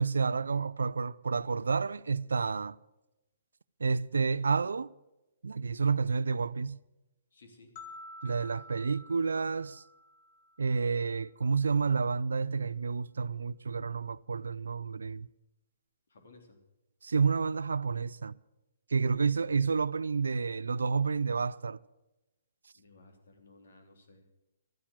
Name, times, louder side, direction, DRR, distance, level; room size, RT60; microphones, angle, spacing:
voice 1, 0.0-2.8 3.8-4.9 5.4-6.8 8.2-9.8 10.6-15.3 17.0-18.4 18.9-21.8, right 5 dB, 80° right, 0.4 m, -30 dB
voice 2, 7.3-7.7 8.2-8.6 16.1-16.6 22.7-24.2, left 2 dB, 65° left, 3.3 m, -58 dB
sound 1, 7.8-10.9, left 1 dB, 45° left, 2.3 m, -50 dB
12.5 x 10.0 x 7.4 m
hypercardioid pair, 135°, 0 cm